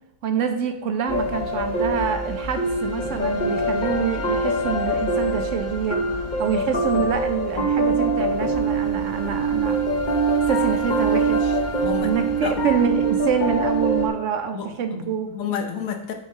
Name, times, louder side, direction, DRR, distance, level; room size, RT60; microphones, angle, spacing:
voice 1, 0.2-6.0 6.4-9.8 10.5-11.6 12.0-15.3, right 7 dB, 65° right, 8 dB, 0.8 m, -26 dB
sound 1, 1.1-14.1, right 2 dB, 40° left, 0.8 m, -24 dB
voice 2, 11.8-12.1 12.4-12.6 14.5-16.1, left 7 dB, 65° left, 5 dB, 1.2 m, -30 dB
7.0 x 4.6 x 3.5 m, 0.89 s
omnidirectional pair, 1.7 m